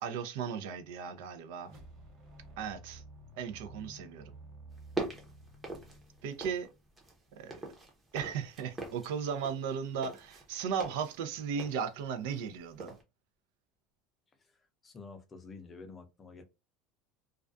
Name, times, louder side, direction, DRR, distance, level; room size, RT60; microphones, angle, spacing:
voice 1, 0.0-1.7 2.6-3.0 3.4-4.2 6.2-6.7 7.4-7.6 8.1-12.9, right 7 dB, 75° right, 0.5 m, -36 dB
sound 1, 1.6-7.0, right 1 dB, 35° right, 1.2 m, -53 dB
sound 2, 4.7-6.7 7.0-12.5 12.8-13.0, right 2 dB, 15° right, 0.7 m, -42 dB
voice 2, 14.4-16.4, left 4 dB, 20° left, 0.5 m, -50 dB
2.3 x 2.2 x 2.4 m
supercardioid pair, 140°, 0 cm